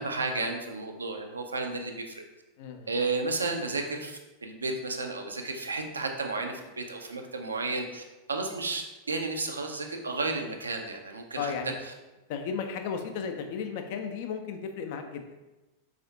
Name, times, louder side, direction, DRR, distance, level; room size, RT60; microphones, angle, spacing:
voice 1, 0.0-2.2 2.9-11.5, right 3 dB, 75° right, 4 dB, 0.3 m, -33 dB
voice 2, 2.6-2.9 11.4-11.7 12.3-15.3, left 6 dB, 50° left, 5 dB, 0.3 m, -34 dB
3.4 x 2.4 x 2.6 m, 1.1 s
figure-of-eight pair, 90°, 0 cm